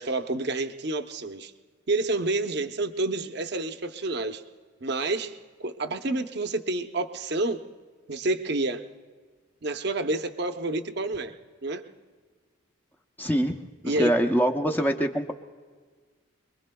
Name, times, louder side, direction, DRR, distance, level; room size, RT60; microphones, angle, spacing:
voice 1, 0.0-1.5 1.9-4.4 4.8-5.3 5.6-7.6 8.1-8.8 9.6-11.3 11.6-11.8 13.8-14.1, right 2 dB, 50° right, 7 dB, 0.7 m, -29 dB
voice 2, 13.2-13.5 13.8-15.3, equal, 10° left, 3 dB, 0.6 m, -24 dB
26.5 x 21.5 x 2.2 m, 1.5 s
head